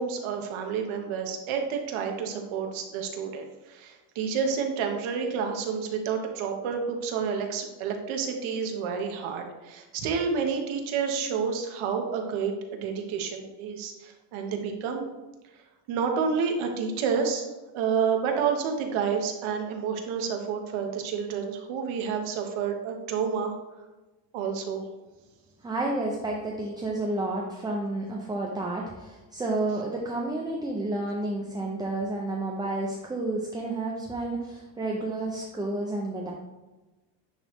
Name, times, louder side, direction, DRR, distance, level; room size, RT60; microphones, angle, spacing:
voice 1, 0.0-15.1 15.9-17.5 17.7-23.5 24.3-24.8, right 6 dB, 75° right, 3 dB, 1.2 m, -29 dB
voice 2, 25.6-36.3, right 2 dB, 10° right, -2 dB, 0.3 m, -30 dB
9.8 x 3.3 x 3.1 m, 1.1 s
cardioid pair, 145°, 49 cm